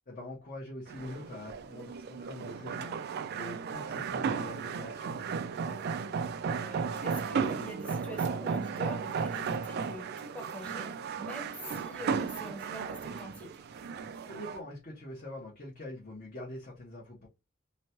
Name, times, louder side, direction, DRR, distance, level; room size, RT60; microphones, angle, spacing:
voice 1, 0.1-3.1 3.4-5.2 14.3-17.3, left 1 dB, 40° left, 0.8 m, -44 dB
sound 1, 0.9-14.6, right 6 dB, 50° right, 0.3 m, -35 dB
voice 2, 5.5-6.1 6.6-13.6, equal, 5° left, 0.9 m, -45 dB
3.0 x 2.2 x 2.7 m
head